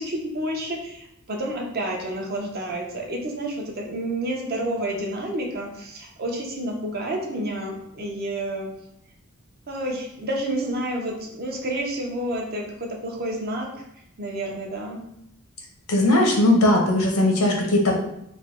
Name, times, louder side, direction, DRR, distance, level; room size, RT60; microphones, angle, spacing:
voice 1, 0.0-8.7 9.7-13.8 14.2-15.0, right 1 dB, 45° right, 0 dB, 0.6 m, -29 dB
voice 2, 15.9-18.0, left 1 dB, 75° left, 1 dB, 0.8 m, -19 dB
3.2 x 2.2 x 4.0 m, 0.79 s
head